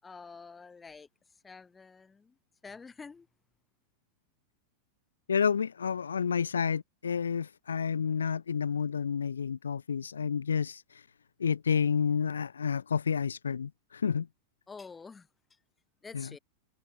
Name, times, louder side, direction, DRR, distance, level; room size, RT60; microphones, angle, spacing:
voice 1, 0.0-1.1 1.4-2.4 2.6-3.3 14.7-15.3 16.0-16.4, left 4 dB, 15° left, 6.6 m, -47 dB
voice 2, 5.3-11.0 11.4-14.3 16.1-16.3, left 6 dB, 70° left, 0.5 m, -30 dB
figure-of-eight pair, 90°, 0 cm